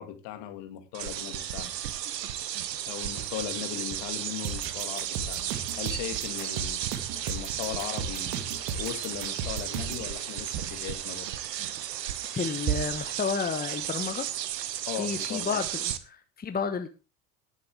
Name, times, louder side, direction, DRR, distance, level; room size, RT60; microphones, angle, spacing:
voice 1, 0.0-1.7 2.8-11.3 14.9-15.6, left 11 dB, 55° left, 2.2 m, -38 dB
sound 1, 0.9-16.0, right 11 dB, 75° right, 1.0 m, -34 dB
sound 2, 3.2-3.6 3.9-4.2 4.6-4.9 5.4-5.8 6.1-6.5 6.8-7.2 7.5-7.9 8.3-8.5 9.0-9.4 9.7-10.2 10.5-10.9 12.7-13.2, right 14 dB, 35° right, 0.8 m, -38 dB
sound 3, 4.4-10.1, right 6 dB, 55° right, 2.0 m, -36 dB
voice 2, 12.3-14.3 15.0-16.9, left 6 dB, 20° left, 1.1 m, -31 dB
18.0 x 7.6 x 3.4 m
figure-of-eight pair, 70°, 49 cm